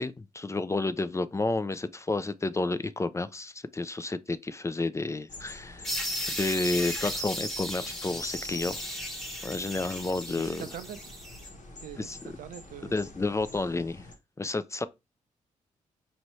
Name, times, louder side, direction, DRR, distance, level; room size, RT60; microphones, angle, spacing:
voice 1, 0.0-6.0 6.3-8.8 9.4-10.6 12.0-12.3 12.9-14.0 14.4-14.9, left 3 dB, 20° left, 0.4 m, -31 dB
sound 1, 5.3-14.2, left 2 dB, 65° left, 1.1 m, -47 dB
sound 2, 5.8-11.5, equal, ahead, 0.9 m, -35 dB
voice 2, 10.4-11.2 11.8-12.9, right 9 dB, 80° right, 0.5 m, -43 dB
4.4 x 2.7 x 3.0 m
supercardioid pair, 50°, 14 cm